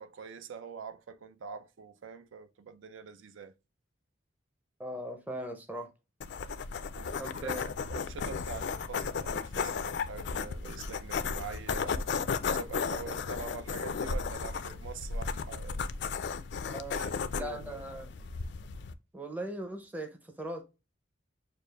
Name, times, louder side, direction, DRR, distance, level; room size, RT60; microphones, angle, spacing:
voice 1, 0.0-3.5 6.9-12.1 12.5-15.8 16.6-17.8, right 5 dB, 85° right, 0.4 m, -45 dB
voice 2, 4.8-5.9 7.2-7.7 13.1-13.2 16.6-17.1 17.3-18.1 19.1-20.6, right 1 dB, 10° right, 0.5 m, -39 dB
sound 1, 6.2-18.9, left 5 dB, 60° left, 0.3 m, -35 dB
6.5 x 2.4 x 2.3 m
head